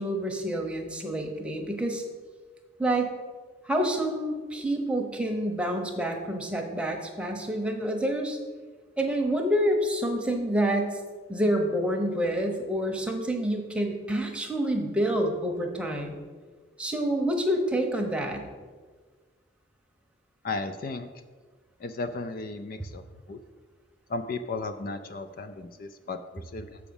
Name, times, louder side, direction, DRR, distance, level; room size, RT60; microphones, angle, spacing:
voice 1, 0.0-2.0 2.8-3.1 3.6-8.4 9.0-11.0 11.3-16.2 16.8-18.4, right 1 dB, 5° right, 2 dB, 0.9 m, -28 dB
voice 2, 20.4-21.1 21.8-23.0 23.3-23.4 24.1-26.8, left 3 dB, 50° left, 9 dB, 0.4 m, -35 dB
7.1 x 4.8 x 7.0 m, 1.5 s
head